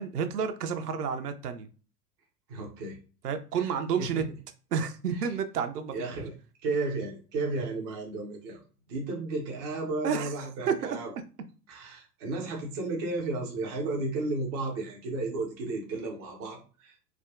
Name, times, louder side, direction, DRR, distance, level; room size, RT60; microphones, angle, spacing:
voice 1, 0.0-1.7 3.2-4.2 4.7-6.1 10.0-10.3 10.7-11.0, right 7 dB, 75° right, 8 dB, 0.6 m, -30 dB
voice 2, 2.5-3.0 3.6-3.7 4.0-4.2 5.9-6.3 6.6-8.6 8.9-11.1 11.7-16.9, right 2 dB, 20° right, -1 dB, 0.3 m, -33 dB
3.3 x 2.1 x 2.4 m, 0.37 s
figure-of-eight pair, 95°, 47 cm